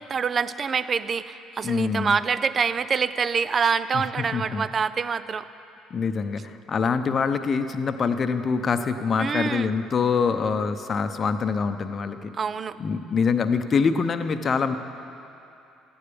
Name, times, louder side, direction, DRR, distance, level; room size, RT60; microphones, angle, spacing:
voice 1, 0.0-5.5 9.2-9.7 12.4-12.8, right 6 dB, 40° right, 14 dB, 0.4 m, -26 dB
voice 2, 1.6-2.1 3.9-4.0 4.3-4.7 5.9-12.3 12.8-14.8, left 5 dB, 40° left, 9 dB, 0.7 m, -25 dB
14.5 x 9.6 x 5.2 m, 2.8 s
hypercardioid pair, 60°, 0 cm